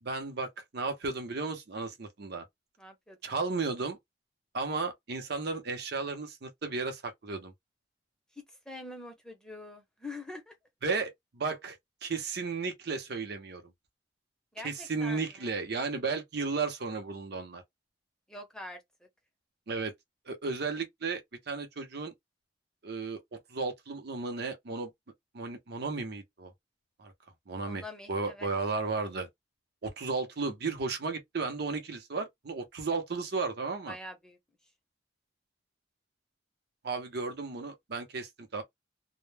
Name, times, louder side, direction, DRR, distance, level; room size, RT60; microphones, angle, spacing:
voice 1, 0.0-2.4 3.2-4.0 4.5-7.5 10.8-11.8 12.0-13.6 14.6-17.6 19.7-19.9 20.3-22.1 22.8-23.2 23.5-24.9 25.3-26.5 27.0-27.1 27.5-27.8 28.1-29.3 29.8-34.0 36.8-38.6, right 4 dB, 65° right, 0.7 m, -34 dB
voice 2, 2.8-3.2 8.7-10.6 14.5-15.5 18.3-18.8 27.7-28.5 33.9-34.4, left 2 dB, 5° left, 0.6 m, -44 dB
2.1 x 2.1 x 3.2 m
head